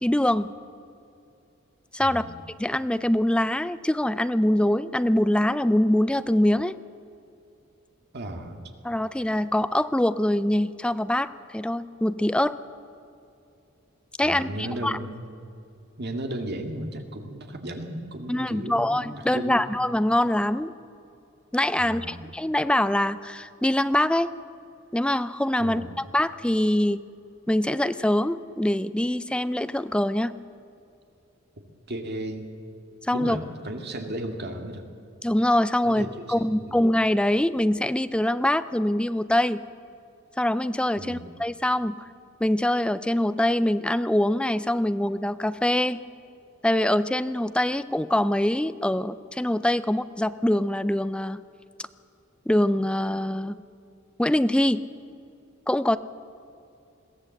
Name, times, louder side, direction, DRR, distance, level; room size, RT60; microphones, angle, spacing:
voice 1, 0.0-0.5 1.9-2.3 2.6-6.7 8.8-12.5 14.2-15.0 18.3-20.7 21.5-24.3 24.9-27.0 27.5-30.3 33.1-33.4 35.2-39.6 40.4-42.0 42.4-46.0 46.6-51.4 52.5-53.6 54.2-54.8 55.7-56.0, left 1 dB, 5° left, 14 dB, 0.4 m, -24 dB
voice 2, 2.0-2.4 8.1-8.7 14.2-15.3 16.0-19.6 21.8-22.2 25.6-25.9 31.9-32.5 33.1-34.8 35.8-36.8 41.0-41.3, right 1 dB, 55° right, 5 dB, 2.0 m, -35 dB
21.5 x 16.0 x 7.8 m, 2.5 s
head